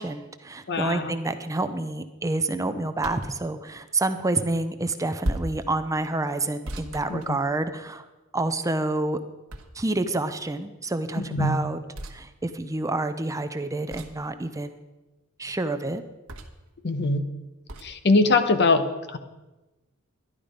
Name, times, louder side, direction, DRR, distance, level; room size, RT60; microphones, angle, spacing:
voice 1, 0.0-8.0 8.3-9.2 9.7-11.8 12.1-14.8 15.4-16.0, right 2 dB, 15° right, 9 dB, 0.6 m, -28 dB
voice 2, 0.7-1.1 7.1-7.4 11.2-11.6 16.8-17.2 17.8-19.2, left 3 dB, 55° left, 9 dB, 0.9 m, -22 dB
sound 1, 3.0-3.4 5.2-5.6 6.6-7.8 9.5-10.1 11.9-12.2 13.9-14.3 16.3-16.7 17.7-17.9, right 1 dB, 85° right, 1.3 m, -35 dB
12.0 x 11.0 x 5.1 m, 1.1 s
head